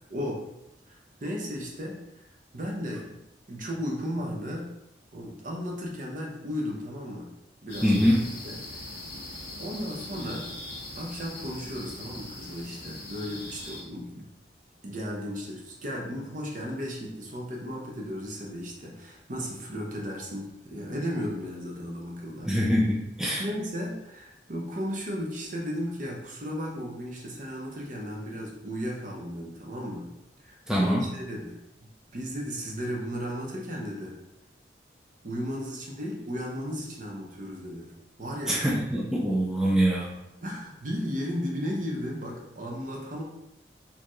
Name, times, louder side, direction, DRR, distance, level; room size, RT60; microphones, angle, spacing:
voice 1, 0.1-0.4 0.9-2.3 2.5-3.2 3.5-4.7 5.1-7.3 7.6-8.1 8.4-8.9 9.6-10.5 10.9-14.3 14.8-22.6 23.4-30.1 30.4-31.6 32.1-34.2 35.2-37.9 38.2-38.6 40.4-43.2, equal, 45° right, -1 dB, 0.8 m, -35 dB
sound 1, 7.7-13.8, left 1 dB, 60° left, 1.3 m, -41 dB
voice 2, 7.8-8.2 22.4-23.4 30.7-31.0 38.5-40.2, equal, 5° right, -4 dB, 0.4 m, -24 dB
4.4 x 2.8 x 3.0 m, 0.87 s
head